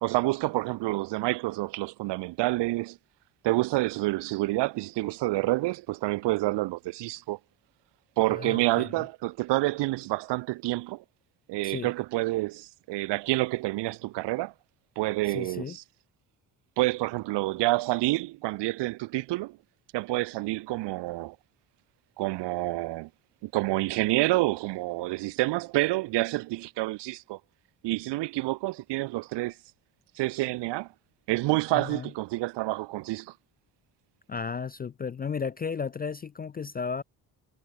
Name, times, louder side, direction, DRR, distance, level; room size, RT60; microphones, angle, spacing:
voice 1, 0.0-3.0 3.4-7.4 8.2-11.0 11.5-14.5 15.0-15.8 16.8-19.6 19.9-21.4 22.2-23.1 23.4-27.4 27.8-29.6 30.2-30.9 31.3-33.3, right 19 dB, 60° right, 0.5 m, -28 dB
voice 2, 8.4-8.9 11.6-11.9 15.3-15.8 31.7-32.1 34.3-37.0, left 6 dB, 20° left, 0.3 m, -34 dB
hypercardioid pair, 55°, 48 cm